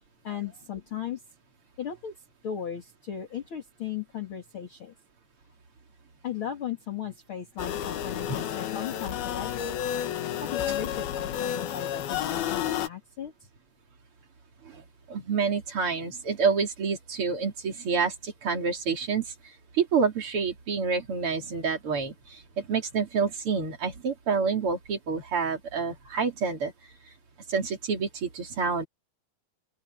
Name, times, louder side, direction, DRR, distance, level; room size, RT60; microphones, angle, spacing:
voice 1, 0.2-1.2 1.8-2.1 2.4-4.9 6.2-9.8 10.4-13.5, left 9 dB, 40° left, 2.3 m, -36 dB
sound 1, 7.6-12.9, left 10 dB, 65° left, 3.1 m, -31 dB
voice 2, 15.1-19.3 19.7-26.7 27.5-28.9, right 5 dB, 35° right, 3.3 m, -28 dB
open air
omnidirectional pair, 5.2 m